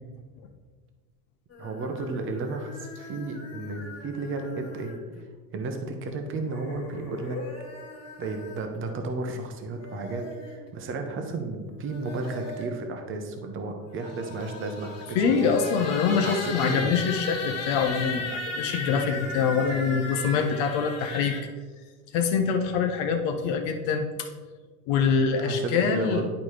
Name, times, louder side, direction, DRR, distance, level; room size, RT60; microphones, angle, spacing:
sound 1, 1.5-5.2 6.4-8.8 9.6-10.6 11.7-12.8 13.8-21.4, left 3 dB, 35° left, 1.7 m, -37 dB
voice 1, 1.6-4.9 5.5-7.4 8.2-10.3 10.7-15.6 16.2-17.0 25.4-26.3, right 3 dB, 25° right, 4 dB, 0.9 m, -33 dB
voice 2, 15.1-21.3 22.1-24.3 24.9-26.3, left 6 dB, 55° left, 4 dB, 0.8 m, -25 dB
10.5 x 4.1 x 3.2 m, 1.5 s
supercardioid pair, 130°, 46 cm